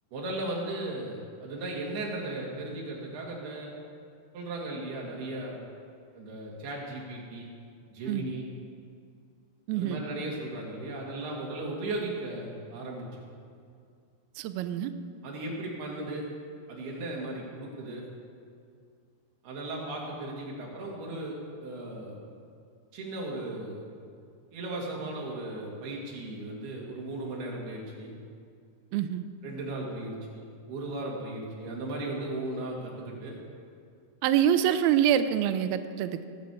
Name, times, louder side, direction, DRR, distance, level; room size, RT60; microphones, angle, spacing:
voice 1, 0.1-3.7 4.3-5.6 6.1-7.5 7.9-8.4 9.8-13.2 15.2-16.2 16.7-18.0 19.4-22.2 22.9-23.9 24.5-28.1 29.4-33.4, right 2 dB, 65° right, -3 dB, 4.2 m, -36 dB
voice 2, 9.7-10.0 14.4-14.9 28.9-29.3 34.2-36.3, right 10 dB, 85° right, 10 dB, 2.2 m, -25 dB
18.0 x 6.5 x 8.4 m, 2.3 s
omnidirectional pair, 5.1 m